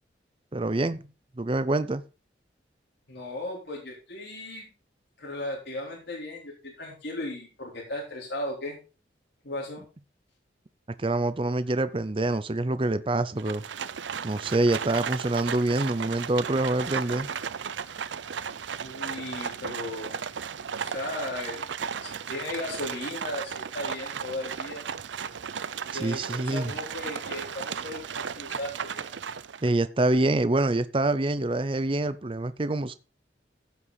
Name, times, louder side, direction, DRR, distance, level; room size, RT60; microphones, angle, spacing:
voice 1, 0.5-1.0 1.4-2.0 11.0-13.6 14.2-17.3 25.9-26.7 29.6-32.9, right 2 dB, 30° right, 13 dB, 0.6 m, -26 dB
voice 2, 3.1-4.7 5.2-8.8 9.4-9.8 18.8-20.2 20.8-21.7 22.0-24.8 25.9-29.1, left 1 dB, 60° left, -4 dB, 3.9 m, -36 dB
Livestock farm animals working animals, 13.4-29.7, right 7 dB, 80° right, 0.6 m, -35 dB
16.0 x 5.9 x 4.0 m, 0.32 s
head